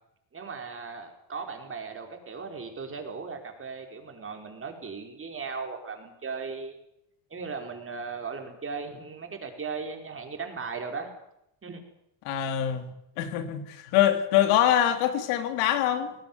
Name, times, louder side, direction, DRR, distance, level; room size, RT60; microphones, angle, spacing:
voice 1, 0.3-6.8 7.3-11.1 11.6-11.8, right 5 dB, 25° right, 5.1 m, -37 dB
voice 2, 12.2-12.8 13.2-16.1, left 11 dB, 90° left, 3.0 m, -24 dB
19.5 x 19.0 x 9.6 m
cardioid pair, 125°, 48 cm